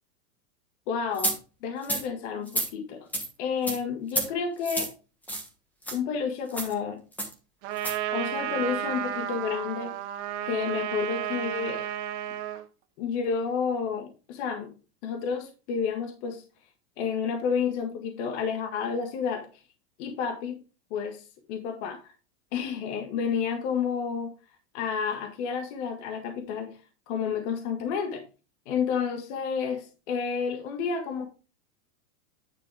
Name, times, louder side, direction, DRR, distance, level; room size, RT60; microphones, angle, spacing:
voice 1, 0.9-1.3 1.6-3.1 3.4-4.9 5.9-7.0 8.1-9.9 10.4-11.9 13.0-14.7 15.0-16.4 17.0-19.5 20.0-20.6 20.9-22.1 22.5-24.3 24.7-26.8 27.1-28.2 28.6-31.3, left 6 dB, 45° left, 1.7 m, -30 dB
sound 1, 1.2-1.4 1.8-2.0 2.5-2.7 3.1-3.3 3.7-3.8 4.1-4.3 4.6-4.9 5.3-5.5 5.8-6.0 6.5-6.7 7.2-7.3 7.8-8.0, right 1 dB, 5° left, 1.3 m, -29 dB
Trumpet, 7.6-12.6, right 11 dB, 45° right, 1.4 m, -32 dB
9.7 x 5.4 x 3.4 m
supercardioid pair, 160°, 47 cm